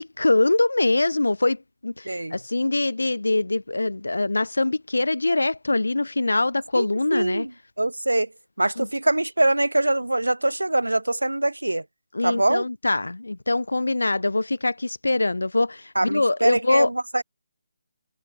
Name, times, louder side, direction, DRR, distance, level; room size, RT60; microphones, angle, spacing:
voice 1, 0.0-7.5 8.8-8.9 12.1-16.9, left 2 dB, 75° left, 0.9 m, -23 dB
voice 2, 2.1-2.4 6.7-7.5 7.8-8.3 8.6-11.8 12.2-12.6 15.9-17.2, right 1 dB, 85° right, 2.8 m, -23 dB
figure-of-eight pair, 145°, 0 cm